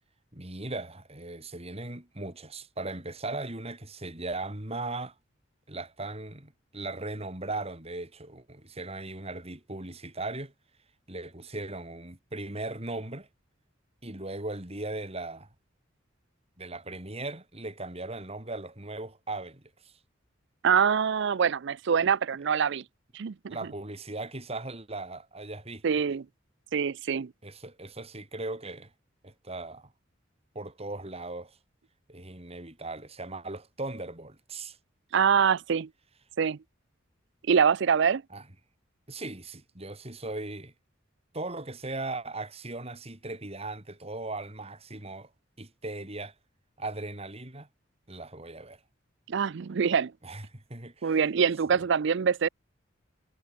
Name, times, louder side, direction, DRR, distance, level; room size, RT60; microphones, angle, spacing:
voice 1, 0.3-5.1 5.7-10.5 11.1-13.3 14.0-15.5 16.6-19.9 23.5-25.8 27.4-28.9 29.2-29.9 30.5-31.6 32.1-34.8 38.3-38.4 39.1-40.7 41.3-45.3 45.6-46.3 46.8-47.7 48.1-48.8 50.2-51.1, right 2 dB, 30° right, 3.8 m, -38 dB
voice 2, 20.6-22.8 23.1-23.6 25.8-26.3 26.7-27.3 35.1-35.9 36.4-36.6 37.5-38.2 49.3-50.1 51.0-52.5, right 6 dB, 60° right, 0.5 m, -24 dB
head